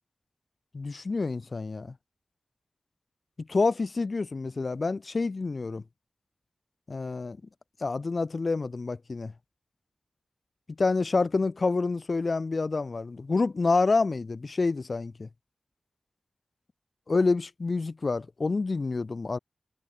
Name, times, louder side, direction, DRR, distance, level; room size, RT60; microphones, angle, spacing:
voice 1, 0.7-1.9 3.4-5.8 6.9-7.4 7.8-9.3 10.8-15.3 17.1-19.4, left 3 dB, 50° left, 1.1 m, -28 dB
wide cardioid pair, 115°, 0 cm